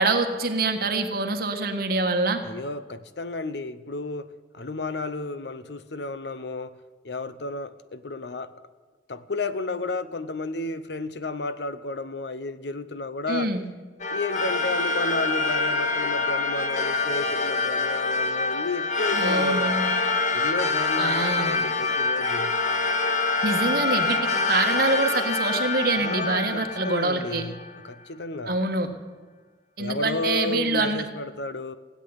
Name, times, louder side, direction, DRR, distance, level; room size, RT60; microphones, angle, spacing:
voice 1, 0.0-2.4 13.3-13.6 19.1-19.9 21.0-21.6 23.4-24.2 24.5-27.5 28.4-28.9 29.8-31.0, right 3 dB, 55° right, 1.6 m, -25 dB
voice 2, 2.4-4.3 4.5-6.8 7.0-8.5 9.1-13.5 14.1-20.0 20.3-22.5 26.0-27.6 27.8-28.6 29.8-31.7, left 3 dB, 75° left, 0.8 m, -32 dB
sound 1, 14.0-27.8, left 3 dB, 45° left, 0.9 m, -25 dB
16.5 x 8.3 x 9.7 m
head